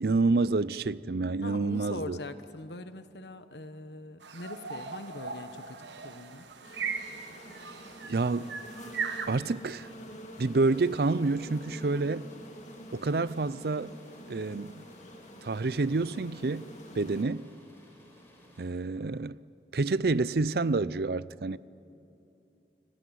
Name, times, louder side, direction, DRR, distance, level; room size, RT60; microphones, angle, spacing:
voice 1, 0.0-2.2 8.1-8.5 9.3-9.9 10.4-12.3 12.9-13.9 14.3-14.8 15.4-16.7 17.0-17.5 18.6-19.4 19.7-21.6, right 3 dB, 60° right, 0.5 m, -28 dB
voice 2, 1.4-6.4 16.9-17.2, left 2 dB, 75° left, 1.3 m, -42 dB
sound 1, 4.2-9.3, right 5 dB, 85° right, 1.5 m, -38 dB
sound 2, 6.6-17.2, equal, 40° left, 2.6 m, -48 dB
sound 3, 9.6-18.6, equal, 15° left, 4.8 m, -57 dB
30.0 x 17.5 x 9.3 m
head